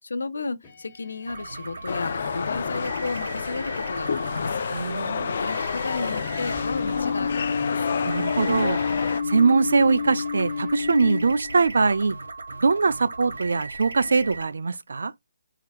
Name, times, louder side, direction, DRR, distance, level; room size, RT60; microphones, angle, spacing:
voice 1, 0.0-4.6 5.2-7.9, left 3 dB, 85° left, 0.7 m, -33 dB
sound 1, 0.6-11.7, left 5 dB, 15° left, 1.3 m, -32 dB
sound 2, 1.3-14.4, right 3 dB, 85° right, 1.3 m, -38 dB
sound 3, 1.9-9.2, left 6 dB, 45° left, 0.4 m, -29 dB
voice 2, 4.7-5.4 8.0-8.8 9.3-12.2 12.6-15.1, right 4 dB, 70° right, 0.5 m, -22 dB
4.4 x 3.9 x 2.4 m
hypercardioid pair, 170°, 0 cm